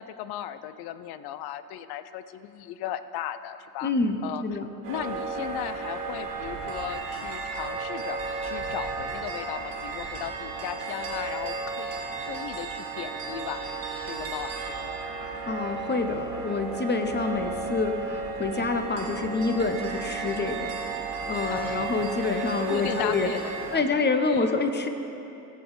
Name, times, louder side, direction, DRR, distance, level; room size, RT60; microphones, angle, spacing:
voice 1, 0.0-3.9 4.2-4.6 4.9-13.7 14.0-15.0 21.5-21.9 22.7-23.8 24.3-24.5, left 11 dB, 50° left, 13 dB, 0.6 m, -36 dB
voice 2, 3.8-4.2 4.4-4.7 15.5-20.7 21.3-23.3 23.7-24.9, left 3 dB, 20° left, 7 dB, 0.8 m, -27 dB
sound 1, 4.8-23.8, right 4 dB, 55° right, 1.9 m, -34 dB
16.5 x 7.9 x 3.2 m, 3.0 s
hypercardioid pair, 55°, 48 cm